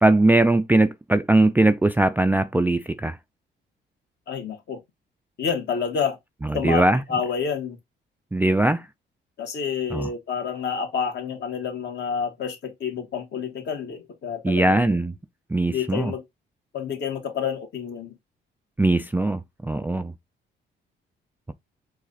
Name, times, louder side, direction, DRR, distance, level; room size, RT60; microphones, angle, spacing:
voice 1, 0.0-3.2 6.4-7.0 8.3-8.9 9.9-10.1 14.4-15.1 15.5-16.1 18.8-20.1, right 2 dB, 10° right, 0.3 m, -20 dB
voice 2, 4.3-4.8 5.4-6.2 6.5-6.8 7.1-7.8 9.4-15.0 15.7-16.2 16.7-18.2, left 6 dB, 60° left, 1.6 m, -28 dB
4.7 x 2.4 x 4.0 m
cardioid pair, 90°, 20 cm